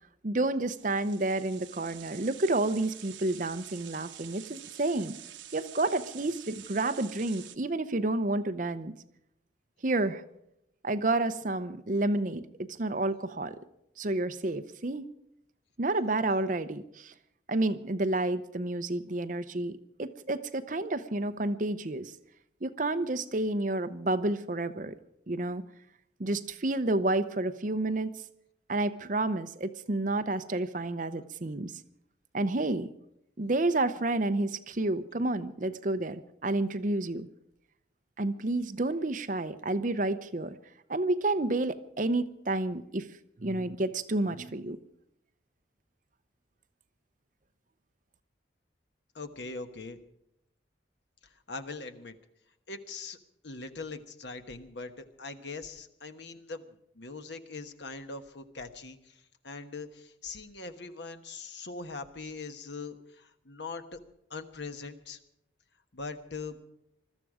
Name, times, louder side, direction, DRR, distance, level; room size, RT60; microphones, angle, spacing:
voice 1, 0.2-5.2 5.5-8.9 9.8-10.2 10.8-12.5 12.8-13.6 14.0-15.1 15.8-17.1 17.5-22.1 22.6-25.0 25.3-25.6 26.2-28.1 28.7-31.7 32.3-32.9 33.4-37.3 38.2-40.6 40.9-43.1 43.4-44.8, right 2 dB, 45° right, 11 dB, 0.7 m, -30 dB
sound 1, 0.7-7.6, right 12 dB, 80° right, 1.0 m, -48 dB
voice 2, 49.1-50.0 51.5-52.1 52.7-53.2 53.4-59.2 59.4-64.0 64.3-65.2 65.9-66.6, left 3 dB, 70° left, 8 dB, 1.2 m, -41 dB
21.0 x 13.5 x 4.9 m, 0.79 s
head